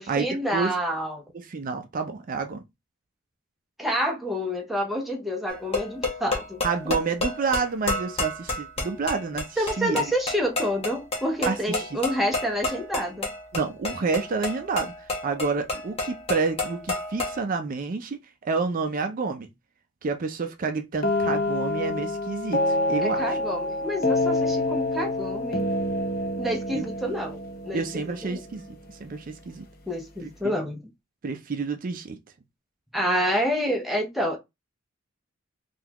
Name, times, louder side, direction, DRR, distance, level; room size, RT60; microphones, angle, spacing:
voice 1, 0.0-1.2 3.8-6.9 9.6-13.3 23.0-25.7 26.4-27.4 27.6-27.8 28.2-28.4 29.9-30.8 32.9-34.4, equal, ahead, 0.6 m, -28 dB
voice 2, 1.3-2.6 6.6-10.0 11.4-12.0 13.5-19.5 20.0-23.4 26.7-26.8 27.7-29.7 30.2-30.5 31.2-32.2, right 4 dB, 40° right, 0.4 m, -29 dB
sound 1, 5.5-17.4, left 2 dB, 30° left, 1.1 m, -31 dB
sound 2, 21.0-28.7, left 2 dB, 45° left, 0.5 m, -27 dB
3.7 x 2.3 x 2.9 m
head